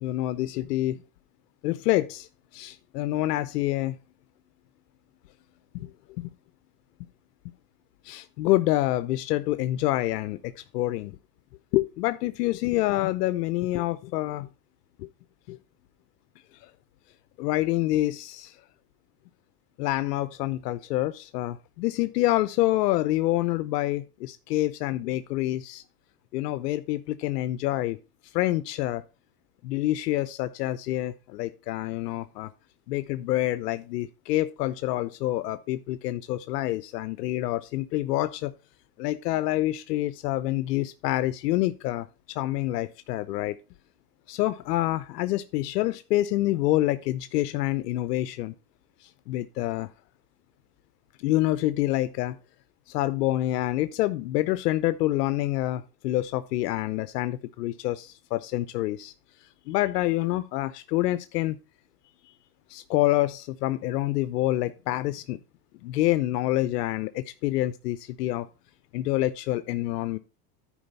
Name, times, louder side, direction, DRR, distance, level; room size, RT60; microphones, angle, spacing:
voice 1, 0.0-1.0 1.6-2.3 2.5-4.0 5.7-5.9 6.2-6.3 8.0-11.2 11.7-14.5 15.0-15.1 15.5-15.6 16.6-16.7 17.4-18.6 19.8-25.8 26.3-28.0 28.3-29.0 29.6-32.5 32.9-38.5 39.0-43.6 44.3-48.5 49.0-49.9 51.2-52.4 52.9-59.1 59.7-61.6 62.7-65.4 65.8-68.5 68.9-70.2, left 16 dB, 85° left, 0.7 m, -27 dB
10.0 x 4.8 x 5.3 m
supercardioid pair, 125°, 47 cm